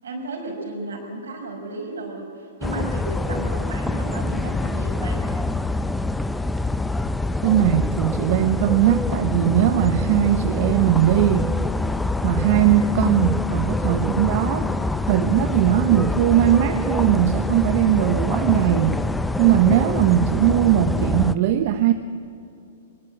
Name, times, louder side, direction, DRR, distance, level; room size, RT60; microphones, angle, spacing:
voice 1, 0.0-5.2, right 2 dB, 75° right, 2 dB, 5.9 m, -34 dB
sound 1, 2.6-21.3, left 2 dB, 5° left, 0.7 m, -25 dB
voice 2, 7.4-11.6 12.2-14.7 15.1-19.1 19.4-21.9, right 11 dB, 50° right, 9 dB, 1.0 m, -19 dB
22.5 x 21.0 x 8.0 m, 2.6 s
hypercardioid pair, 110°, 0 cm